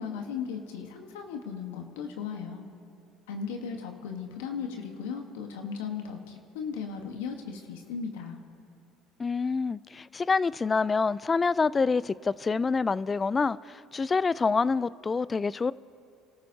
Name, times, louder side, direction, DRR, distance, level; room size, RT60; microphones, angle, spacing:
voice 1, 0.0-2.6 3.3-8.4, left 6 dB, 85° left, 1.2 m, -36 dB
voice 2, 9.2-15.7, left 4 dB, 25° left, 0.3 m, -27 dB
29.5 x 13.5 x 2.8 m
supercardioid pair, 80°, 0 cm